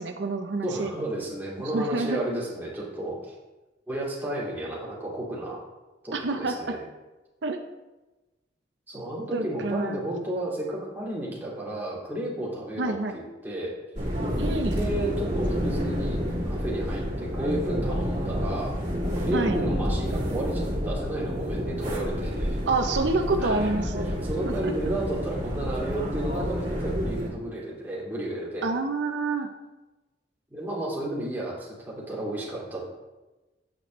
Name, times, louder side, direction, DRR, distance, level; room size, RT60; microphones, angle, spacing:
voice 1, 0.0-0.9 1.7-2.2 6.1-6.8 7.4-7.6 9.3-10.0 12.8-13.2 14.4-14.8 19.3-19.6 22.6-24.1 24.4-24.7 28.6-29.5, right 3 dB, 80° right, 5 dB, 0.6 m, -28 dB
voice 2, 0.6-3.3 3.9-5.6 6.0-6.8 8.9-13.7 14.6-18.7 19.1-22.6 23.4-23.7 24.0-28.7 30.5-32.9, right 1 dB, 10° right, -6 dB, 2.4 m, -32 dB
sound 1, 13.9-27.3, equal, 45° right, 2.5 m, -29 dB
8.6 x 7.6 x 3.1 m, 1.1 s
head